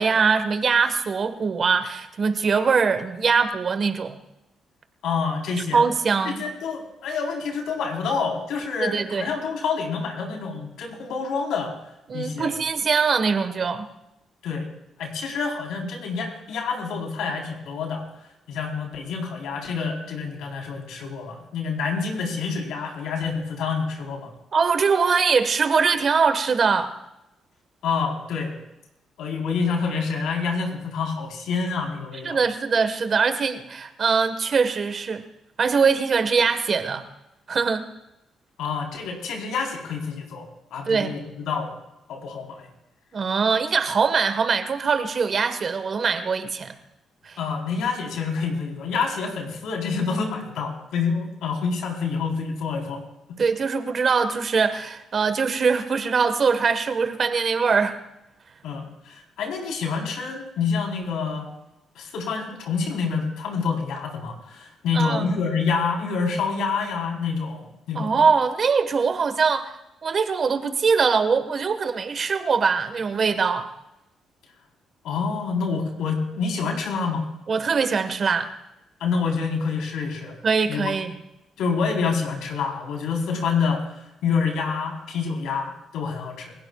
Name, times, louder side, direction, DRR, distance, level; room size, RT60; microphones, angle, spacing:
voice 1, 0.0-4.2 5.7-6.4 8.8-9.3 12.1-13.9 24.5-26.9 32.2-35.2 35.6-37.0 37.5-37.9 40.9-41.2 43.1-46.7 47.2-47.4 53.4-58.0 64.9-65.3 67.9-69.7 70.0-73.7 77.5-78.5 80.4-81.1, right 5 dB, 45° right, 9 dB, 1.4 m, -22 dB
voice 2, 5.0-5.9 6.2-11.7 12.1-12.5 14.4-14.7 15.0-24.3 27.8-28.6 29.2-32.4 38.6-41.7 42.1-42.7 47.4-53.0 58.6-61.5 62.0-68.2 75.0-77.3 79.0-80.4 80.7-80.9 81.6-86.5, left 5 dB, 85° left, 1 dB, 3.9 m, -27 dB
29.0 x 16.5 x 2.4 m, 0.89 s
cardioid pair, 90°, 0 cm